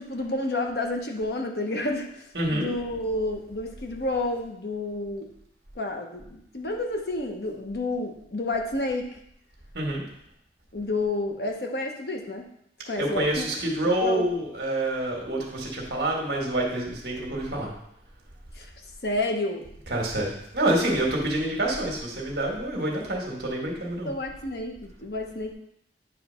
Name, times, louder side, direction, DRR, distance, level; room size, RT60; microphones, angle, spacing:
voice 1, 0.0-5.3 5.8-9.1 10.7-12.5 12.9-13.5 14.0-14.3 18.6-18.7 19.0-19.7 24.0-25.5, left 2 dB, 60° left, 3 dB, 0.9 m, -30 dB
voice 2, 2.3-2.7 9.7-10.0 13.0-17.7 19.9-24.1, right 1 dB, 60° right, -1 dB, 1.6 m, -27 dB
9.2 x 3.2 x 5.6 m, 0.76 s
head